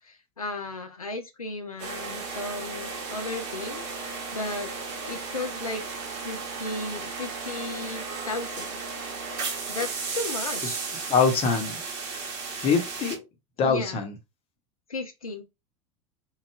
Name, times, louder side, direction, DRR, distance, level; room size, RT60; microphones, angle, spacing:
voice 1, 0.0-4.7 5.1-5.8 6.2-8.8 9.7-10.8 13.6-14.0 14.9-15.5, left 2 dB, 85° left, 0.4 m, -35 dB
sound 1, 1.8-13.2, right 4 dB, 50° right, 0.9 m, -34 dB
voice 2, 11.1-11.7 12.6-13.2 13.6-14.1, left 5 dB, 35° left, 0.8 m, -23 dB
3.1 x 2.2 x 2.3 m
figure-of-eight pair, 80°, 18 cm